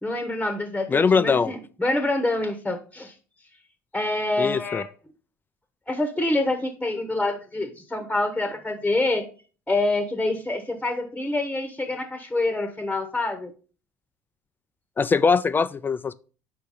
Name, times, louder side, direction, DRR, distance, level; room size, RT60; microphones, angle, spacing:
voice 1, 0.0-3.1 3.9-4.8 5.9-9.3 9.7-13.5, left 2 dB, 10° left, 0.9 m, -26 dB
voice 2, 0.9-1.5 4.4-4.8 15.0-16.1, left 5 dB, 25° left, 0.3 m, -21 dB
5.3 x 4.5 x 4.9 m
supercardioid pair, 75°, 8 cm